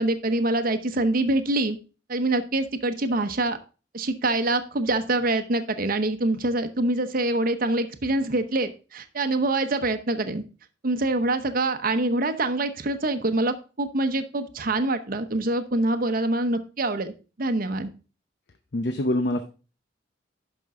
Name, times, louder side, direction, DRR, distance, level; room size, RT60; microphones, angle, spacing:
voice 1, 0.0-1.8 2.1-3.6 3.9-10.4 10.8-17.1 17.4-17.9, right 2 dB, 50° right, 8 dB, 0.9 m, -25 dB
voice 2, 18.7-19.4, left 1 dB, 65° left, 8 dB, 0.7 m, -25 dB
11.5 x 5.4 x 3.6 m, 0.33 s
head